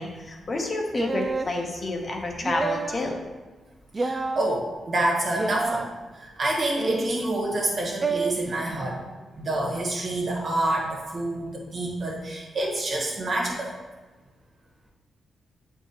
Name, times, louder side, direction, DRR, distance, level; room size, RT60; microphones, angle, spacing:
voice 1, 0.0-3.2, left 2 dB, 40° left, 1 dB, 0.9 m, -29 dB
sound 1, 0.9-1.5 2.4-3.1 3.9-4.4 5.3-5.9 6.8-7.3 8.0-8.3, right 3 dB, 30° right, 0.3 m, -28 dB
voice 2, 4.0-9.0 9.4-13.7, right 1 dB, 50° right, -2 dB, 1.5 m, -27 dB
7.8 x 4.6 x 2.9 m, 1.3 s
cardioid pair, 95°, 0 cm